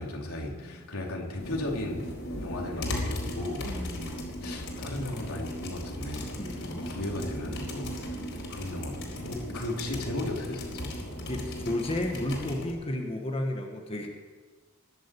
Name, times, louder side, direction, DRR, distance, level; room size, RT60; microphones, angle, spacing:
voice 1, 0.0-2.1 2.4-4.0 4.4-6.4 6.6-7.9 8.3-10.9, left 1 dB, 85° left, -1 dB, 3.6 m, -35 dB
sound 1, 1.4-12.7, left 1 dB, 65° left, 4.2 m, -37 dB
voice 2, 3.6-4.3 6.4-6.8 11.3-14.1, left 1 dB, 25° left, 2 dB, 1.5 m, -33 dB
21.0 x 7.7 x 8.6 m, 1.4 s
head